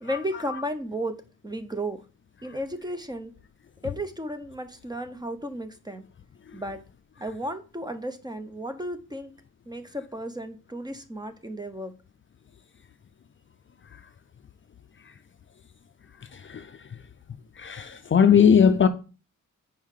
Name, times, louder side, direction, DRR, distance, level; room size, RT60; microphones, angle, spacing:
voice 1, 0.0-1.2 1.4-2.0 2.4-3.3 3.8-6.1 6.5-6.8 7.2-9.3 9.7-11.9, equal, 15° right, 0.6 m, -34 dB
voice 2, 17.6-18.9, left 7 dB, 40° left, 0.4 m, -18 dB
5.5 x 4.5 x 4.7 m
wide cardioid pair, 150°, 32 cm